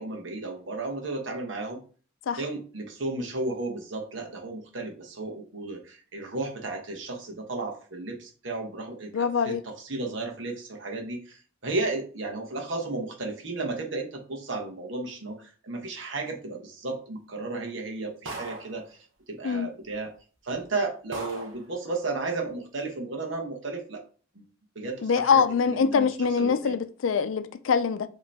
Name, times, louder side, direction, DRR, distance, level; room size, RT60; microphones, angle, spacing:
voice 1, 0.0-1.8 2.4-20.1 20.4-24.0 24.3-24.5 24.7-26.8, right 3 dB, 65° right, 1.2 m, -34 dB
voice 2, 9.1-9.6 19.4-19.7 25.0-28.1, left 6 dB, 80° left, 0.4 m, -24 dB
sound 1, 18.3-18.8 19.9-20.0 20.5-20.6 21.1-21.7, right 2 dB, 85° right, 1.0 m, -38 dB
5.0 x 3.0 x 3.4 m
head